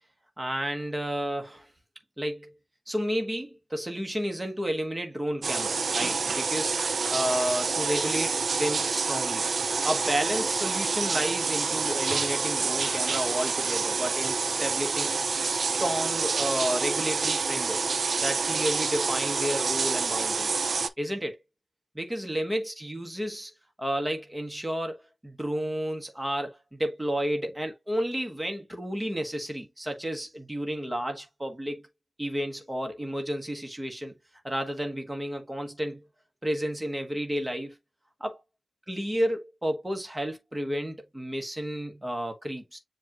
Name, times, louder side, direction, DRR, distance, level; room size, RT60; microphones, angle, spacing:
voice 1, 0.4-1.7 2.2-2.5 2.9-6.8 7.1-9.4 9.8-15.1 15.5-17.8 18.2-20.6 21.0-21.4 21.9-23.5 23.8-31.8 32.2-34.1 34.4-36.0 36.4-37.8 38.2-38.4 38.9-42.8, equal, 10° right, 1.2 m, -31 dB
sound 1, 5.4-20.9, right 4 dB, 55° right, 0.4 m, -28 dB
7.2 x 2.5 x 2.9 m
wide cardioid pair, 130°, 0 cm